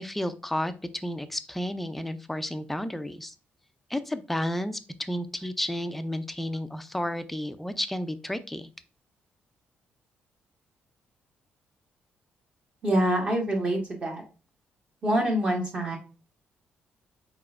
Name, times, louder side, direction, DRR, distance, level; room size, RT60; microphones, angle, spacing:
voice 1, 0.0-3.3 3.9-8.7, left 1 dB, 5° left, 10 dB, 0.4 m, -32 dB
voice 2, 12.8-14.2 15.0-16.0, right 1 dB, 30° right, 0 dB, 1.2 m, -25 dB
4.8 x 4.2 x 2.4 m, 0.34 s
cardioid pair, 155°, 4 cm